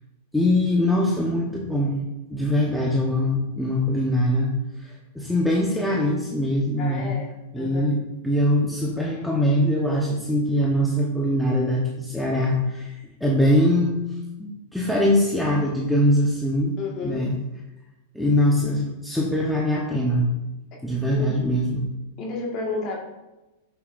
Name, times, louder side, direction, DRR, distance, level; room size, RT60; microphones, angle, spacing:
voice 1, 0.3-2.0 2.3-7.2 7.5-8.0 8.2-12.9 13.2-14.0 14.4-16.7 17.0-17.3 18.1-20.3 20.8-21.9, left 1 dB, 5° left, -3 dB, 1.0 m, -22 dB
voice 2, 6.8-7.3 7.6-7.9 16.8-17.3 21.1-21.3 22.2-23.0, left 4 dB, 40° left, -1 dB, 1.7 m, -31 dB
8.3 x 7.0 x 2.6 m, 1.0 s
hypercardioid pair, 125°, 0 cm